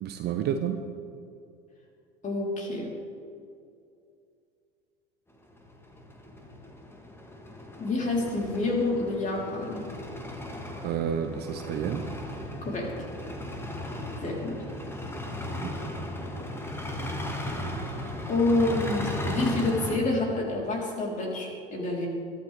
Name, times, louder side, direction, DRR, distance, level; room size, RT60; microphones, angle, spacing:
voice 1, 0.0-0.8 10.8-12.0 15.5-15.7, right 8 dB, 35° right, 7 dB, 0.9 m, -30 dB
voice 2, 2.2-2.9 7.8-9.8 12.6-12.9 14.2-14.6 18.3-22.1, left 2 dB, 25° left, -1 dB, 3.6 m, -28 dB
sound 1, 5.4-20.0, left 1 dB, 10° left, 1.8 m, -36 dB
22.0 x 13.0 x 3.4 m, 2.4 s
figure-of-eight pair, 80°, 29 cm